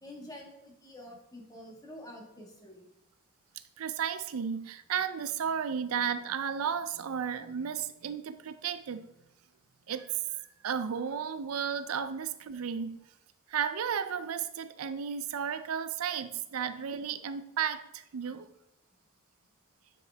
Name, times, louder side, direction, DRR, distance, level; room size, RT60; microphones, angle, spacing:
voice 1, 0.0-2.9, left 1 dB, 15° left, 1.5 m, -48 dB
voice 2, 3.8-9.1 9.9-10.1 10.6-13.0 13.5-18.5, right 7 dB, 85° right, 0.5 m, -33 dB
9.0 x 4.9 x 3.4 m
head